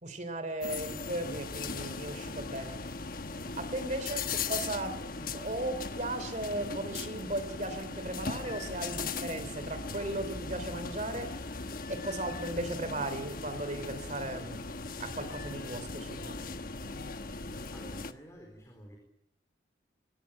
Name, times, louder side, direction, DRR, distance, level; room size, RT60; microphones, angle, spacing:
voice 1, 0.0-2.9 3.6-4.2 4.5-11.3 11.9-14.7 15.0-16.4, right 1 dB, 40° right, 10 dB, 3.2 m, -36 dB
sound 1, 0.6-18.1, left 4 dB, 50° left, 1.2 m, -39 dB
voice 2, 17.7-19.0, equal, 15° left, 2 dB, 4.3 m, -50 dB
23.5 x 19.0 x 8.7 m, 0.76 s
head